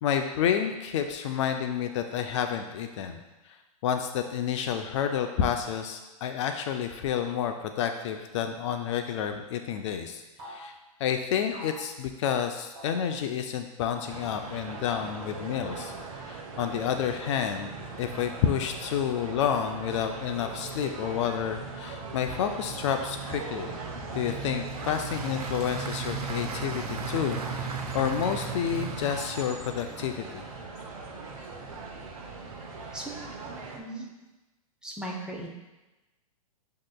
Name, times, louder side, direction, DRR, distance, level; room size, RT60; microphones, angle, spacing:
voice 1, 0.0-3.2 3.5-3.6 3.8-10.7 11.0-15.9 16.2-17.7 18.0-23.8 24.1-30.4, left 8 dB, 50° left, 6 dB, 0.4 m, -30 dB
sound 1, 10.4-10.7 11.5-11.9 12.7-13.1 13.9-14.2 15.1-15.4 16.8-17.3 18.2-18.9, equal, 35° right, 1.1 m, -47 dB
sound 2, 14.0-33.8, right 4 dB, 65° right, 0.8 m, -38 dB
Applause, 24.4-30.7, right 4 dB, 85° right, 0.5 m, -42 dB
voice 2, 33.7-34.1 34.8-35.5, right 1 dB, 5° right, -1 dB, 0.6 m, -37 dB
7.3 x 2.8 x 2.2 m, 1.1 s
hypercardioid pair, 115°, 19 cm